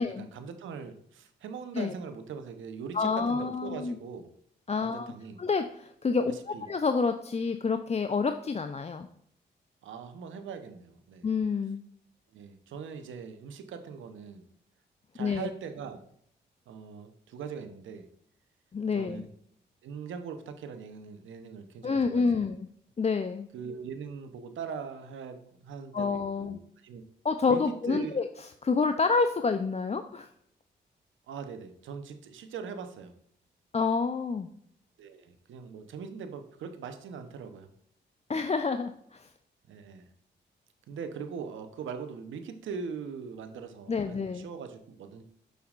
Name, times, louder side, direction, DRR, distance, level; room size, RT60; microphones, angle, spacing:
voice 1, 0.0-4.3 4.8-5.4 6.2-6.7 9.8-11.3 12.3-14.5 15.1-16.0 16.7-18.1 18.9-19.3 19.8-22.5 23.5-27.0 27.4-27.6 27.9-28.2 31.3-33.1 35.0-37.7 39.7-40.1 40.9-45.2, right 6 dB, 80° right, 8 dB, 0.9 m, -41 dB
voice 2, 2.9-4.0 4.7-5.1 5.4-9.1 11.2-11.8 15.2-15.5 18.7-19.2 21.8-22.7 23.0-23.5 25.9-26.6 27.2-28.3 28.6-30.3 33.7-34.5 38.3-39.3 43.9-44.5, left 4 dB, 35° left, 8 dB, 0.6 m, -28 dB
6.7 x 6.5 x 2.5 m, 0.69 s
supercardioid pair, 50°, 20 cm